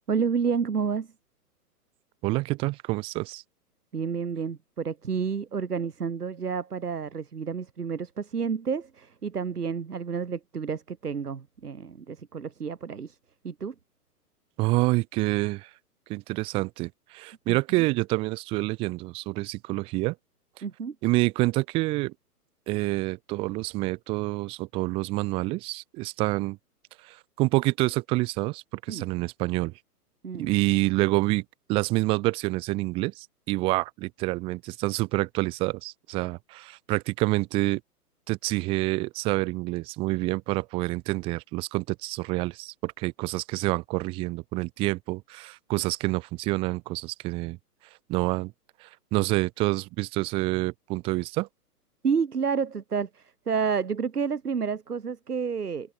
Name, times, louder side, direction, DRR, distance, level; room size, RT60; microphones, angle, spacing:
voice 1, 0.1-1.1 3.9-13.2 13.4-13.7 20.6-21.0 28.9-29.1 30.2-30.5 52.0-55.9, right 6 dB, 70° right, 7.2 m, -30 dB
voice 2, 2.2-3.4 14.6-15.7 16.1-20.2 21.0-22.1 22.7-26.6 27.0-29.7 30.3-37.8 38.3-47.6 48.1-48.5 48.8-51.5, right 22 dB, 10° right, 0.6 m, -27 dB
figure-of-eight pair, 125°, 47 cm